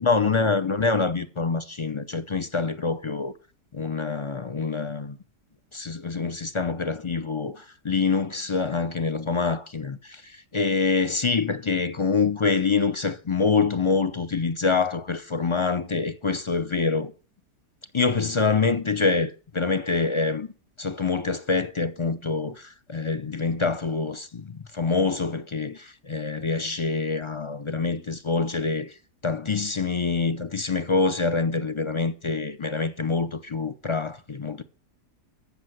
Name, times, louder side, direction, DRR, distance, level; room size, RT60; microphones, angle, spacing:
voice 1, 0.0-3.3 3.7-5.2 5.7-17.1 17.9-20.5 20.8-29.0 29.2-34.6, left 4 dB, 40° left, 0.4 m, -26 dB
14.5 x 6.7 x 7.8 m
omnidirectional pair, 1.8 m